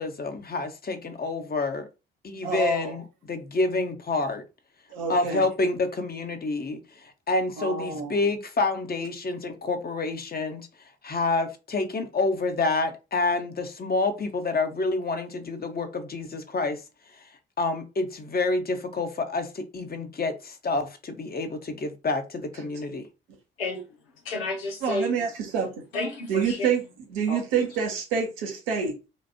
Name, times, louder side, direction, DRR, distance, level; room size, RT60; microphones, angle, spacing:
voice 1, 0.0-1.9 2.2-4.4 5.1-10.6 11.0-16.8 17.6-23.0, left 3 dB, 30° left, 1.2 m, -28 dB
voice 2, 2.4-3.0 4.9-5.4 7.6-8.2 24.8-25.7 26.3-26.8 27.1-29.1, right 6 dB, 75° right, 1.1 m, -27 dB
voice 3, 24.2-25.3 25.9-26.7 27.3-27.4, left 2 dB, 85° left, 0.7 m, -31 dB
6.3 x 2.6 x 2.8 m
figure-of-eight pair, 45°, 29 cm